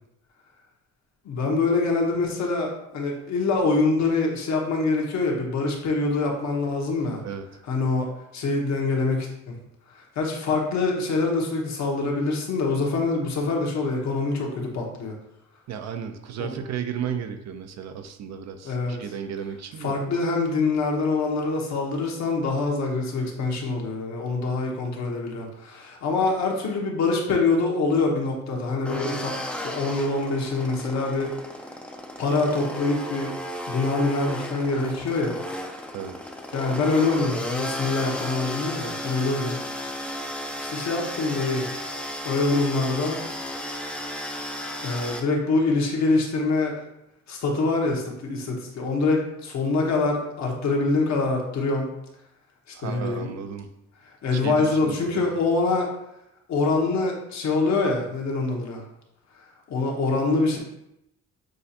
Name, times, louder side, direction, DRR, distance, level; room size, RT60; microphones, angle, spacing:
voice 1, 1.2-7.2 7.7-8.1 8.3-9.6 9.9-15.1 16.4-16.5 18.6-19.0 19.8-29.3 29.6-31.4 32.2-33.4 33.7-35.4 36.5-39.6 40.6-41.7 42.2-43.2 44.8-46.7 47.3-51.9 52.8-53.3 54.2-55.9 56.5-58.8 59.7-60.6, left 3 dB, 65° left, 0 dB, 1.0 m, -25 dB
voice 2, 15.7-20.0 35.9-36.2 52.7-53.7 54.3-55.3, right 8 dB, 60° right, 7 dB, 0.5 m, -34 dB
sound 1, 28.8-45.2, equal, 5° left, 0.4 m, -34 dB
6.3 x 2.5 x 2.8 m, 0.83 s
cardioid pair, 90°, 30 cm